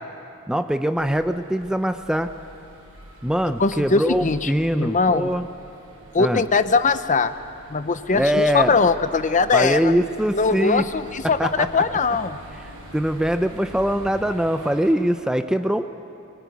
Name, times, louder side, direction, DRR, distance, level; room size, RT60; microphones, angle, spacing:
voice 1, 0.5-2.3 3.2-5.5 6.2-6.4 8.1-8.8 9.5-10.8 11.2-11.7 12.9-15.9, equal, 5° right, 8 dB, 0.5 m, -22 dB
sound 1, 0.9-14.9, right 1 dB, 75° right, 6.1 m, -44 dB
voice 2, 3.6-4.5 4.8-5.3 6.1-7.3 7.7-9.9 10.3-12.4, left 4 dB, 35° left, 11 dB, 0.7 m, -21 dB
24.0 x 19.5 x 9.5 m, 2.7 s
head